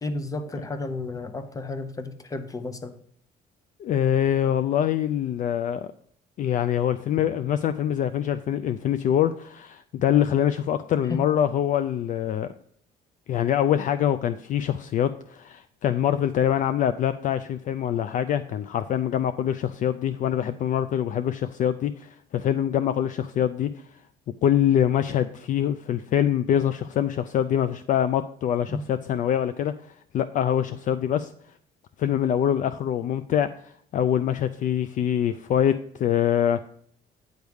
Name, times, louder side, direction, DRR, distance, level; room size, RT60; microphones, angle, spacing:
voice 1, 0.0-2.9 11.1-11.3 28.7-28.8, left 2 dB, 20° left, 10 dB, 0.8 m, -32 dB
voice 2, 3.8-5.9 6.4-12.5 13.3-23.8 24.4-29.7 30.1-31.3 32.0-36.6, left 10 dB, 50° left, 11 dB, 0.4 m, -24 dB
9.3 x 3.5 x 6.2 m, 0.63 s
cardioid pair, 110°, 17 cm